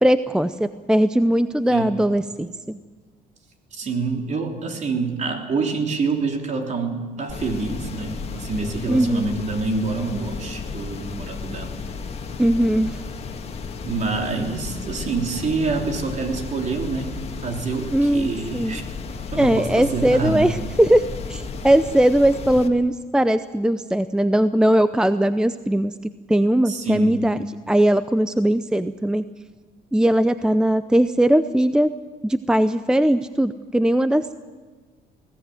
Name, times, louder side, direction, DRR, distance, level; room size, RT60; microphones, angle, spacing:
voice 1, 0.0-2.8 8.9-9.3 12.4-13.0 17.9-18.8 19.4-21.0 21.3-25.9 26.3-27.4 27.7-29.2 29.9-31.9 32.2-34.3, right 1 dB, 5° right, 12 dB, 0.6 m, -19 dB
voice 2, 1.7-2.2 3.7-11.7 13.8-17.1 17.4-18.8 19.3-20.6 26.7-27.3, right 4 dB, 45° right, 4 dB, 3.4 m, -27 dB
sound 1, 7.3-22.7, left 5 dB, 35° left, 2.1 m, -34 dB
21.5 x 17.0 x 9.4 m, 1.4 s
cardioid pair, 110°, 17 cm